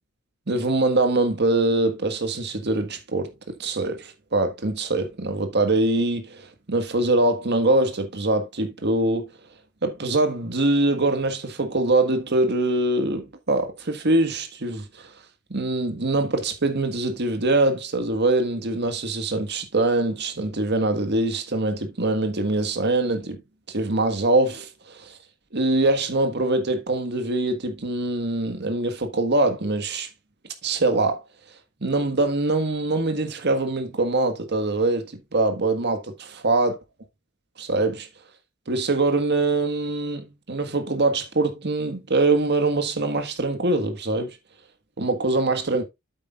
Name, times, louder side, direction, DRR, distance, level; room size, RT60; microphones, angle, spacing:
voice 1, 0.5-9.3 9.8-15.1 15.5-23.4 23.7-25.2 25.5-30.1 30.6-31.2 31.8-36.8 37.6-38.1 38.7-44.4 45.0-45.8, right 2 dB, 55° right, 1.6 m, -23 dB
8.4 x 8.2 x 2.5 m
head